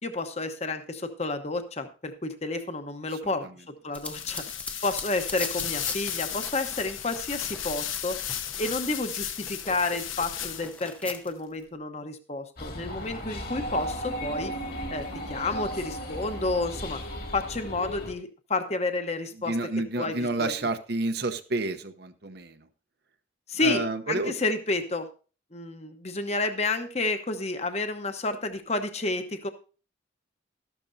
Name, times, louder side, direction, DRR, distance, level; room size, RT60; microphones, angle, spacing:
voice 1, 0.0-4.5 4.8-8.2 8.6-14.5 14.9-17.0 17.3-19.6 20.0-20.5 23.5-25.1 25.5-29.5, left 3 dB, 35° left, 7 dB, 1.0 m, -30 dB
sound 1, 3.9-9.0 9.4-11.3, left 2 dB, 5° left, 0.7 m, -41 dB
sound 2, 4.0-10.9, left 10 dB, 90° left, 1.1 m, -35 dB
sound 3, 12.6-18.1, equal, 50° left, 2.1 m, -35 dB
voice 2, 19.4-22.7 23.6-24.3, right 2 dB, 55° right, 8 dB, 0.8 m, -30 dB
13.5 x 12.0 x 2.7 m, 0.36 s
head